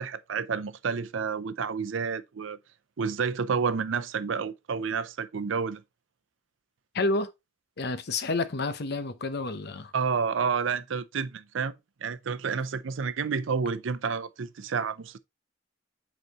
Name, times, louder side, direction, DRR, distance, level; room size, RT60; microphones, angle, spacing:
voice 1, 0.0-2.6 3.0-5.8 9.9-11.8 12.0-15.2, right 5 dB, 90° right, 0.5 m, -30 dB
voice 2, 6.9-7.3 7.8-9.9, left 3 dB, 60° left, 0.8 m, -29 dB
8.1 x 4.1 x 2.9 m
head